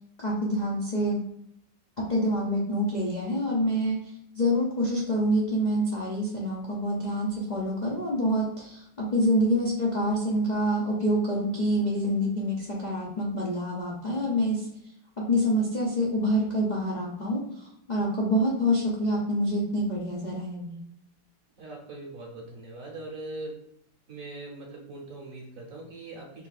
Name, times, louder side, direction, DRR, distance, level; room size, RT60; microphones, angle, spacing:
voice 1, 0.2-1.2 2.0-14.7 15.3-20.8, equal, 65° left, -5 dB, 0.4 m, -26 dB
voice 2, 21.6-23.5 24.1-26.5, right 2 dB, 55° right, 0 dB, 1.0 m, -41 dB
4.3 x 2.7 x 4.0 m, 0.76 s
omnidirectional pair, 2.1 m